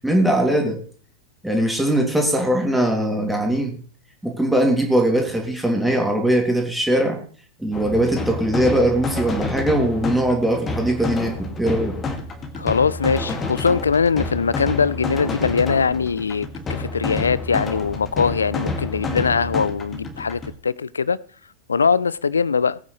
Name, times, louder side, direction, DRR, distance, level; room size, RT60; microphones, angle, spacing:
voice 1, 0.0-0.8 1.4-3.8 4.2-7.2 7.6-12.0, right 1 dB, 5° right, 2.7 m, -20 dB
sound 1, 7.7-20.5, left 3 dB, 20° left, 2.2 m, -29 dB
voice 2, 12.6-21.2 21.7-22.8, left 5 dB, 75° left, 0.5 m, -21 dB
19.5 x 9.1 x 3.2 m
figure-of-eight pair, 90°, 0 cm